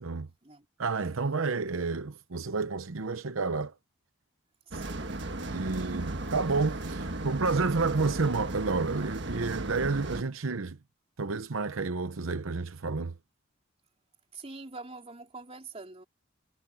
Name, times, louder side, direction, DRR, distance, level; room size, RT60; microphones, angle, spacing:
voice 1, 0.8-3.7 5.5-10.8 11.2-13.1, right 4 dB, 80° right, 0.8 m, -30 dB
voice 2, 4.7-5.2 5.5-5.8 14.3-16.0, right 3 dB, 30° right, 3.8 m, -45 dB
sound 1, 4.7-10.2, right 2 dB, 60° right, 1.5 m, -35 dB
head